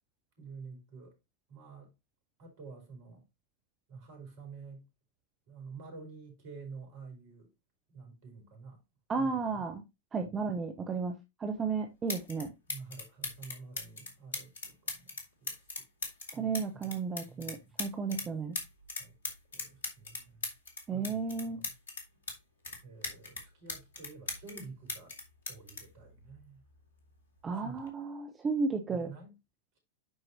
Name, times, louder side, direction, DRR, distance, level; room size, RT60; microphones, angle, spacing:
voice 1, 0.4-1.2 1.5-1.9 2.4-3.2 3.9-4.9 5.5-7.5 7.9-8.8 9.2-9.6 10.2-10.5 12.7-15.9 16.3-16.9 17.3-17.7 18.2-18.3 19.0-19.1 19.5-20.5 20.9-21.7 22.8-25.2 25.5-26.6 27.5-27.9 28.9-29.3, right 4 dB, 50° right, 4.6 m, -49 dB
voice 2, 9.1-9.8 10.1-11.1 11.4-12.5 16.3-18.6 20.9-21.6 27.4-29.1, right 4 dB, 20° right, 1.0 m, -33 dB
sound 1, 11.6-11.7 12.1-12.4 12.7-18.3 18.5-22.4 22.6-24.6 24.9-26.7 27.7-27.9, left 3 dB, 65° left, 2.4 m, -39 dB
11.5 x 4.7 x 2.8 m
figure-of-eight pair, 90°, 0 cm